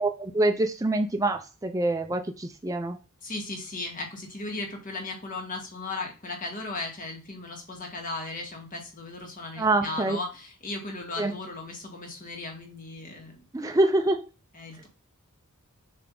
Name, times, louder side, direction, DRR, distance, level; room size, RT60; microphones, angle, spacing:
voice 1, 0.0-3.0 9.6-10.2 11.2-11.3 13.5-14.2, right 2 dB, 15° right, 5 dB, 0.6 m, -25 dB
voice 2, 3.2-13.5 14.5-14.9, left 2 dB, 40° left, 1 dB, 2.0 m, -36 dB
7.1 x 3.4 x 3.9 m, 0.31 s
head